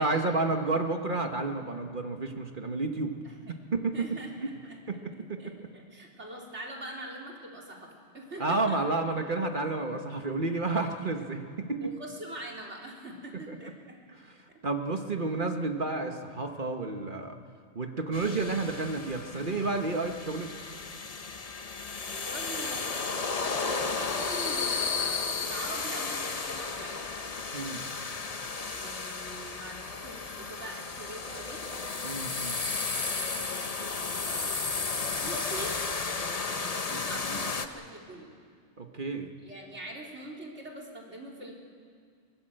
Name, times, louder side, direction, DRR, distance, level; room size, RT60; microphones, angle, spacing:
voice 1, 0.0-3.1 3.5-4.2 4.9-5.5 8.4-11.9 13.5-13.6 14.6-17.4 17.7-20.5 27.5-27.9 32.0-32.6 38.8-39.3, right 3 dB, 45° right, 5 dB, 1.4 m, -31 dB
voice 2, 3.2-3.6 3.9-4.8 5.4-8.8 10.8-10.9 11.8-14.0 22.0-27.1 28.5-31.6 32.9-34.7 35.1-35.8 36.5-38.3 39.4-41.6, right 1 dB, 70° right, -1 dB, 3.7 m, -43 dB
sound 1, 18.1-37.7, left 4 dB, 35° left, 1.0 m, -33 dB
23.5 x 19.0 x 7.8 m, 2.1 s
omnidirectional pair, 1.2 m